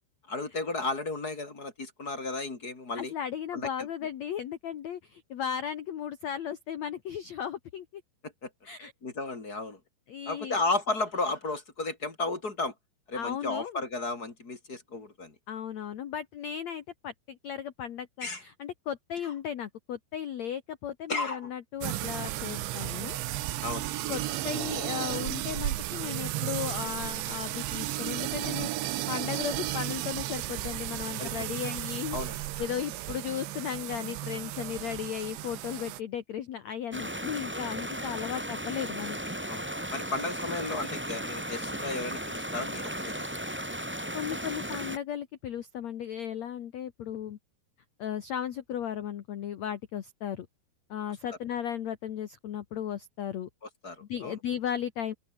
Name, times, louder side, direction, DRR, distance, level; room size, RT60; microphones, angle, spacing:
voice 1, 0.3-3.1 3.5-3.9 8.2-8.5 8.8-9.8 10.3-12.7 13.1-15.3 18.2-18.4 21.1-21.5 23.6-23.9 31.2-31.3 32.1-32.4 39.5-39.6 39.9-43.3 53.8-54.4, left 3 dB, 25° left, 2.8 m, -34 dB
voice 2, 2.9-8.0 8.6-8.9 10.1-10.6 13.1-13.8 15.5-23.2 24.1-32.2 32.6-39.2 44.1-47.4 48.0-50.5 50.9-53.5 54.1-55.1, left 9 dB, 80° left, 1.5 m, -36 dB
sound 1, 21.8-36.0, right 15 dB, 80° right, 3.5 m, -34 dB
sound 2, 36.9-45.0, equal, 5° right, 2.7 m, -36 dB
open air
omnidirectional pair, 5.2 m